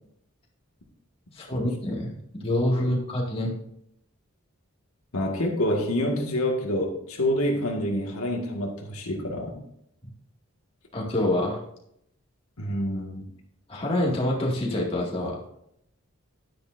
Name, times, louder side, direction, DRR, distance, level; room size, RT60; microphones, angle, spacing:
voice 1, 1.3-3.5 10.9-11.6 13.7-15.4, left 1 dB, 25° left, -3 dB, 2.2 m, -26 dB
voice 2, 5.1-9.6 12.6-13.3, left 1 dB, 85° left, 1 dB, 2.0 m, -27 dB
10.5 x 10.0 x 2.7 m, 0.73 s
head